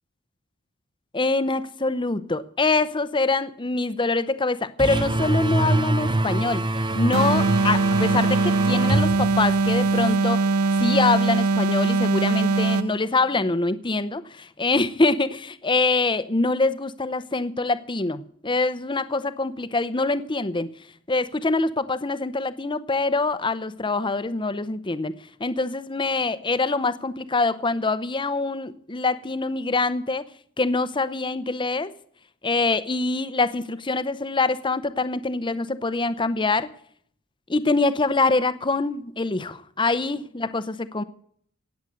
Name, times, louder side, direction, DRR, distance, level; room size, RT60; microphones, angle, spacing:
voice 1, 1.1-6.7 6.9-10.5 10.7-20.7 21.1-25.1 25.4-30.2 30.6-31.9 32.4-36.7 37.5-41.0, left 3 dB, 20° left, 0.7 m, -24 dB
sound 1, 4.8-10.2, right 2 dB, 20° right, 0.7 m, -25 dB
sound 2, 7.1-13.0, right 3 dB, 75° right, 0.6 m, -21 dB
18.0 x 8.0 x 7.7 m
head